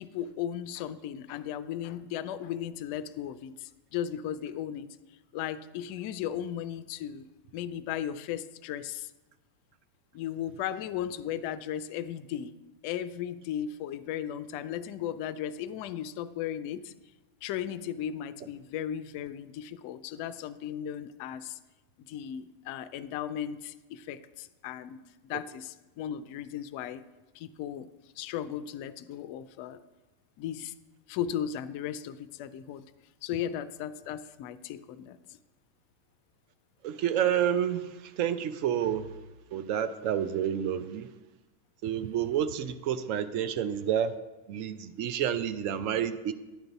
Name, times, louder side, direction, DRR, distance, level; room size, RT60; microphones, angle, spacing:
voice 1, 0.0-4.9 5.3-9.1 10.1-12.5 12.8-16.9 17.4-21.6 22.0-27.0 27.3-27.9 28.2-29.8 30.4-30.7 31.1-32.8 33.2-35.2, left 10 dB, 45° left, 13 dB, 0.3 m, -36 dB
voice 2, 36.8-39.1 39.5-41.1 41.8-44.1 44.5-46.3, right 9 dB, 45° right, 12 dB, 0.5 m, -29 dB
9.9 x 3.9 x 5.7 m, 1.1 s
figure-of-eight pair, 90°, 0 cm